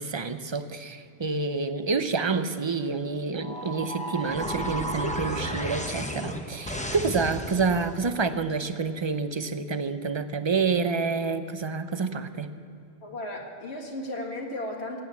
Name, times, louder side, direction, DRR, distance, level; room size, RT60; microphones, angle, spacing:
voice 1, 0.0-12.5, right 4 dB, 30° right, 10 dB, 0.6 m, -28 dB
sound 1, 3.4-8.0, equal, 5° left, 0.9 m, -33 dB
voice 2, 13.0-15.0, left 1 dB, 90° left, 0 dB, 2.2 m, -35 dB
17.5 x 9.0 x 8.2 m, 2.7 s
omnidirectional pair, 1.1 m